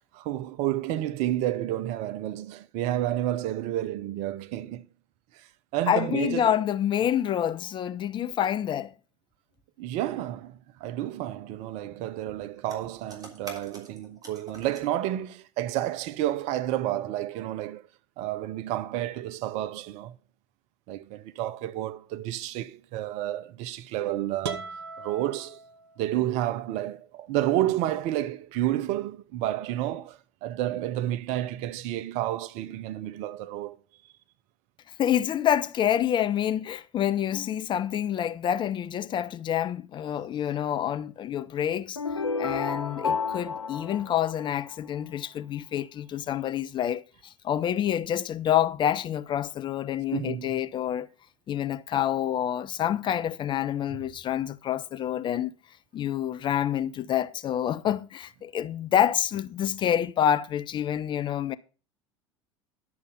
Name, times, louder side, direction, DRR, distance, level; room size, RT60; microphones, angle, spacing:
voice 1, 0.1-4.9 5.7-6.5 9.8-17.9 18.2-20.1 20.9-24.6 25.0-25.6 26.0-33.8 50.1-50.6, right 13 dB, 45° right, 0.7 m, -30 dB
voice 2, 5.9-8.9 35.0-42.0 42.4-51.1 51.5-55.5 55.9-61.6, left 10 dB, 30° left, 0.6 m, -27 dB
sound 1, 12.6-14.9, right 2 dB, 25° right, 3.3 m, -46 dB
sound 2, 24.4-26.3, right 5 dB, 65° right, 1.0 m, -39 dB
sound 3, 41.9-45.0, left 4 dB, 85° left, 0.5 m, -31 dB
11.0 x 6.7 x 5.1 m
figure-of-eight pair, 70°, 16 cm